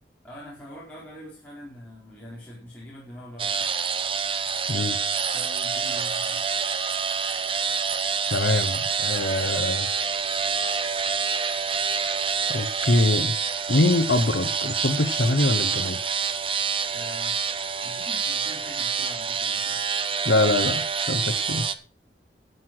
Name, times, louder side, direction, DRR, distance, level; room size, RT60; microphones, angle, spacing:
voice 1, 0.2-3.8 5.3-6.5 16.9-17.4 17.8-19.8, equal, 10° left, -7 dB, 4.2 m, -44 dB
Electric shaver (different shaving modes), 3.4-21.7, right 6 dB, 30° right, 0.8 m, -27 dB
voice 2, 8.3-9.9 12.5-13.3 13.7-16.0 20.2-21.7, left 2 dB, 85° left, 7 dB, 0.9 m, -24 dB
12.5 x 8.1 x 6.0 m, 0.40 s
head